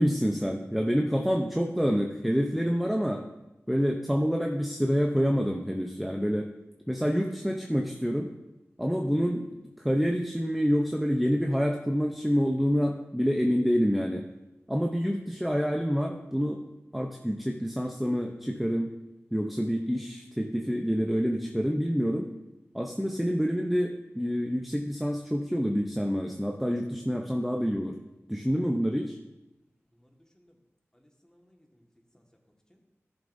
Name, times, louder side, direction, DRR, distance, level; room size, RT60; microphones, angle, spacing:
voice 1, 0.0-3.2 3.7-6.5 6.9-8.3 8.8-14.2 14.7-16.6 16.9-18.9 19.3-22.3 22.7-28.0 28.3-29.2, equal, ahead, 1 dB, 0.8 m, -27 dB
voice 2, 29.9-30.6 30.9-31.9 32.1-32.8, equal, 15° left, 1 dB, 1.7 m, -64 dB
14.5 x 7.2 x 2.7 m, 0.99 s
wide cardioid pair, 55°, 5 cm